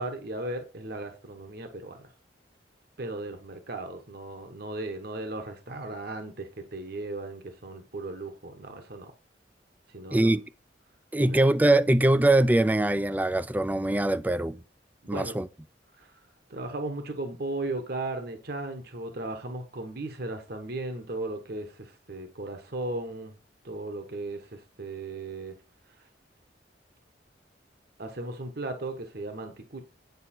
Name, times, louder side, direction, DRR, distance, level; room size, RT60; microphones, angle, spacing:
voice 1, 0.0-2.1 3.0-9.1 9.9-10.3 11.1-11.4 15.0-15.3 16.0-16.1 16.5-23.4 23.6-25.5 28.0-29.8, right 2 dB, 60° right, 1.1 m, -36 dB
voice 2, 11.1-14.6 15.1-15.5, right 1 dB, 10° right, 0.3 m, -22 dB
9.4 x 5.5 x 4.3 m
head